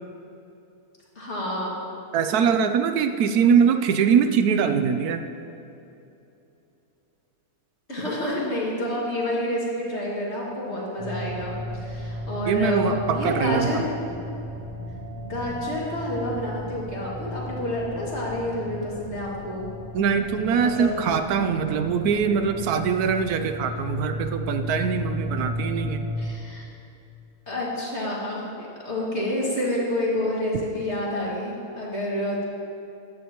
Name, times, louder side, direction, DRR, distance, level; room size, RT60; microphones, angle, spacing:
voice 1, 1.2-1.7 7.9-13.9 15.2-19.7 20.6-21.0 26.2-26.7 27.5-32.4, left 1 dB, 45° left, -5 dB, 2.5 m, -28 dB
voice 2, 2.1-5.2 12.5-13.8 19.9-26.0, right 6 dB, 75° right, 8 dB, 1.1 m, -22 dB
sound 1, 11.0-26.3, left 1 dB, 90° left, 1.8 m, -35 dB
14.5 x 10.5 x 3.0 m, 2.8 s
omnidirectional pair, 1.6 m